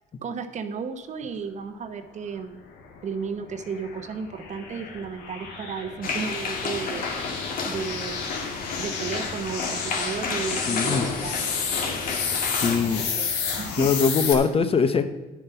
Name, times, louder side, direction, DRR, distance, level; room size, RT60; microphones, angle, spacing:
voice 1, 0.2-2.6 3.0-7.1 7.6-8.2 8.8-11.6 13.1-13.9, right 6 dB, 45° right, 9 dB, 1.0 m, -34 dB
sound 1, 2.8-14.3, left 6 dB, 85° left, 1.8 m, -32 dB
sound 2, 6.0-12.8, left 4 dB, 55° left, 1.7 m, -31 dB
voice 2, 10.7-11.0 12.5-13.0 13.8-15.1, left 5 dB, 35° left, 10 dB, 0.8 m, -22 dB
10.5 x 7.1 x 5.7 m, 1.2 s
cardioid pair, 110°, 17 cm